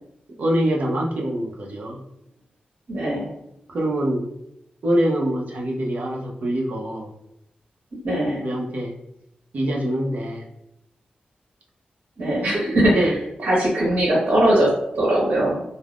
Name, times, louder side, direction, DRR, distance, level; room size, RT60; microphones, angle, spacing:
voice 1, 0.4-2.0 3.7-4.3 4.8-7.1 8.4-8.9 9.5-10.4 12.5-13.1, right 1 dB, 60° right, -1 dB, 0.6 m, -24 dB
voice 2, 2.9-3.3 8.0-8.5 12.2-13.1 13.4-15.6, right 1 dB, 85° right, -6 dB, 1.0 m, -20 dB
3.4 x 2.0 x 2.4 m, 0.83 s
wide cardioid pair, 165°, 3 cm